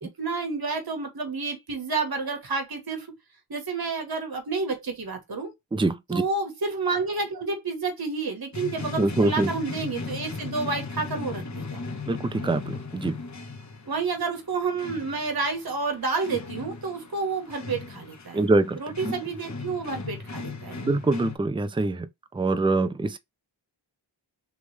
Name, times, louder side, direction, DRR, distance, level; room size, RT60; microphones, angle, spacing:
voice 1, 0.0-3.1 3.5-5.5 6.1-11.8 13.9-18.4 18.8-20.8, right 4 dB, 55° right, 1.4 m, -30 dB
voice 2, 5.7-6.2 9.0-9.5 12.1-13.2 18.3-18.8 19.0-19.1 20.8-22.1 22.3-23.2, right 2 dB, 10° right, 0.5 m, -24 dB
sound 1, 8.5-21.4, left 4 dB, 40° left, 1.0 m, -37 dB
3.5 x 3.1 x 3.2 m
wide cardioid pair, 70°, 45 cm